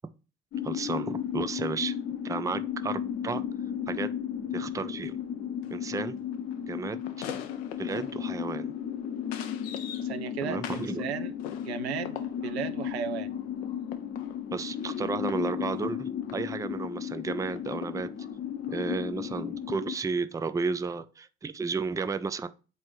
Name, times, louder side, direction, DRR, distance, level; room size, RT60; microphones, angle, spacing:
sound 1, 0.5-20.0, left 9 dB, 45° left, 0.9 m, -34 dB
voice 1, 0.6-2.0 2.2-3.4 3.9-4.1 4.5-5.2 5.7-6.2 6.7-7.3 7.8-8.7 10.4-11.1 14.5-18.1 18.7-22.5, right 4 dB, 10° right, 0.4 m, -33 dB
sound 2, 4.7-4.8 5.0-5.2 5.6-11.0 11.4-16.5 17.6-18.9 19.3-19.4, left 9 dB, 70° left, 0.7 m, -45 dB
voice 2, 10.0-12.2 12.4-13.3, right 8 dB, 80° right, 0.5 m, -35 dB
7.7 x 4.1 x 3.1 m
figure-of-eight pair, 45°, 32 cm